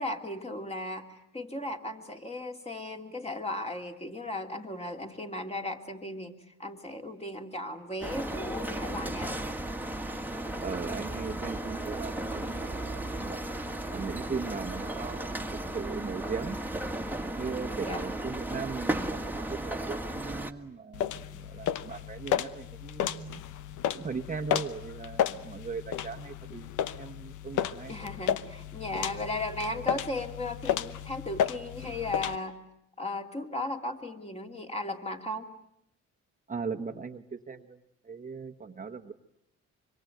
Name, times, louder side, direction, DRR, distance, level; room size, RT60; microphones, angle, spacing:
voice 1, 0.0-9.4 17.8-18.0 27.9-32.6 33.0-35.5, left 2 dB, 20° left, 4 dB, 2.7 m, -36 dB
sound 1, 8.0-20.5, right 1 dB, 5° right, 1.6 m, -35 dB
voice 2, 10.6-13.4 13.9-15.4 15.7-16.6 17.4-23.4 23.9-28.0 36.5-37.8 38.0-39.1, right 5 dB, 25° right, 4 dB, 1.2 m, -38 dB
sound 2, 20.9-32.4, left 10 dB, 85° left, 1.0 m, -33 dB
25.5 x 23.5 x 9.2 m, 0.77 s
cardioid pair, 90°, 30 cm